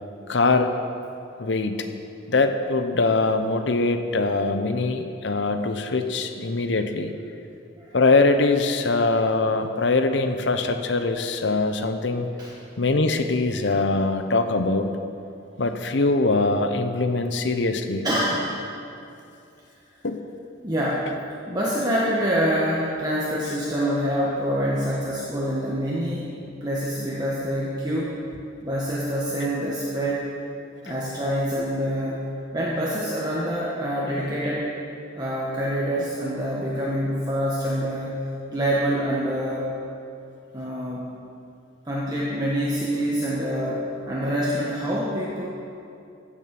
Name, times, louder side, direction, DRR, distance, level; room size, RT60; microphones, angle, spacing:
voice 1, 0.3-0.7 1.4-1.9 2.3-7.3 7.9-12.3 12.8-15.0 15.6-18.1 20.0-20.2 30.9-31.0 31.6-31.7, left 3 dB, 70° left, 8 dB, 0.8 m, -22 dB
voice 2, 18.0-18.7 20.6-21.1 21.5-28.1 28.6-30.3 30.8-34.7 35.1-38.2 38.5-39.7 40.5-41.1 41.8-45.4, equal, 20° right, -6 dB, 1.2 m, -26 dB
15.0 x 7.3 x 6.0 m, 2.6 s
head